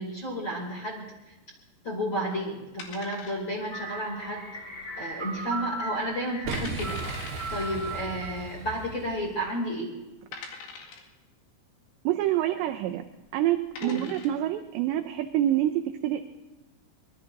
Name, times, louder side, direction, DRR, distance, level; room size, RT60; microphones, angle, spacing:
voice 1, 0.0-1.4 1.8-4.4 5.0-10.0 13.8-14.1, equal, 35° left, -2 dB, 2.3 m, -32 dB
sound 1, 2.8-3.8 4.0-4.1 4.7-5.1 5.5-5.6 6.2-6.3 6.5-7.5 8.6-8.7 9.4-9.5 10.3-11.2 13.0-13.2 13.6-14.4, left 5 dB, 70° left, 4.3 m, -42 dB
sound 2, 3.7-9.1, right 1 dB, 10° left, 5.5 m, -38 dB
Boom, 6.4-9.4, right 4 dB, 65° right, 2.8 m, -36 dB
voice 2, 12.1-13.0 13.3-16.3, right 13 dB, 90° right, 6 dB, 2.4 m, -27 dB
24.5 x 21.0 x 2.6 m, 1.1 s
omnidirectional pair, 5.9 m